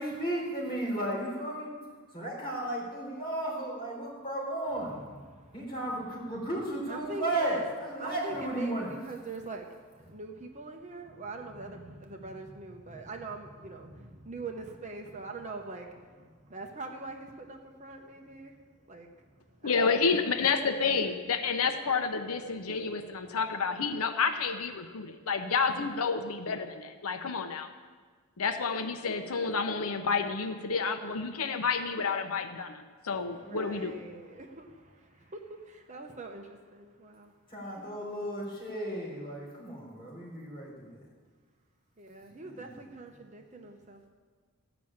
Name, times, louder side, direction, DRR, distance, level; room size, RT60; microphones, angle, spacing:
voice 1, 0.0-1.7 2.1-5.0 5.5-8.9 37.5-41.0 42.4-42.7, right 1 dB, 25° left, -5 dB, 4.5 m, -34 dB
voice 2, 4.9-5.6 6.9-7.7 8.0-19.7 33.1-37.3 37.7-37.9 42.0-44.1, right 3 dB, 35° right, 3 dB, 0.9 m, -43 dB
voice 3, 19.6-27.7 28.4-34.0, left 5 dB, 85° left, 7 dB, 0.7 m, -30 dB
14.0 x 6.0 x 8.7 m, 1.5 s
head